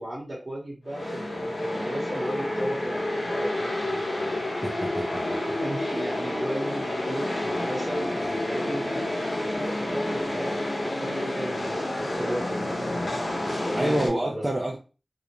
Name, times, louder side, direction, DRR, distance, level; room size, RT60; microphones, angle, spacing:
voice 1, 0.0-4.3 5.6-9.1 9.4-12.7 13.2-14.4, right 1 dB, 45° right, -7 dB, 0.9 m, -36 dB
sound 1, 0.9-14.1, left 1 dB, 80° left, 0.8 m, -29 dB
voice 2, 4.6-5.5 13.7-14.8, right 1 dB, 30° right, 0 dB, 0.4 m, -28 dB
2.5 x 2.0 x 2.9 m, 0.33 s
wide cardioid pair, 65°, 0 cm